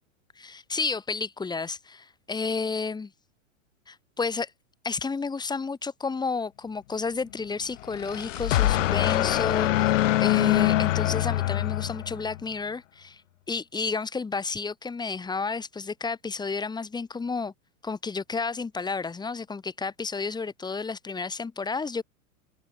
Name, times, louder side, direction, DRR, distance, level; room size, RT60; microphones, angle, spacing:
voice 1, 0.4-3.1 3.9-4.5 4.8-13.2 13.5-17.5 17.8-22.0, left 4 dB, 10° left, 5.7 m, -31 dB
sound 1, 7.8-12.4, left 14 dB, 65° left, 2.5 m, -24 dB
open air
hypercardioid pair, 140°, 40 cm